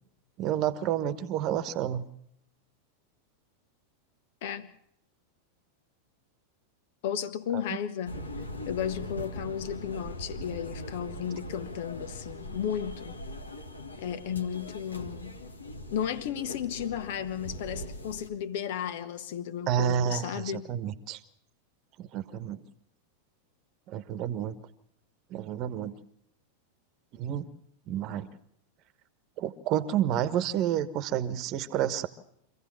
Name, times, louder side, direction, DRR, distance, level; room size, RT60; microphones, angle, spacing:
voice 1, 0.4-2.1 7.7-7.8 19.7-21.2 22.0-22.6 23.9-24.6 25.3-25.9 27.1-27.5 27.9-28.3 29.4-32.1, right 10 dB, 40° right, 15 dB, 1.3 m, -30 dB
voice 2, 4.4-4.7 7.0-8.2 8.7-13.2 14.0-15.4 15.9-20.7, left 9 dB, 50° left, 13 dB, 1.3 m, -34 dB
sound 1, 8.0-18.3, left 1 dB, 80° left, 1.7 m, -41 dB
25.5 x 15.5 x 7.5 m, 0.72 s
figure-of-eight pair, 90°, 0 cm